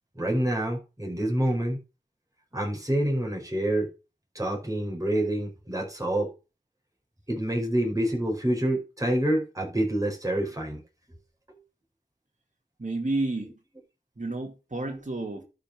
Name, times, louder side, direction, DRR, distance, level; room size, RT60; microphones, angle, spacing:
voice 1, 0.2-1.8 2.5-3.9 4.3-6.3 7.3-10.8 11.5-11.6 14.9-15.0, right 1 dB, 15° right, 5.1 m, -27 dB
voice 2, 12.8-13.6 14.2-15.4, right 2 dB, 40° right, 2.4 m, -31 dB
11.5 x 5.5 x 6.1 m
wide cardioid pair, 45°, 19 cm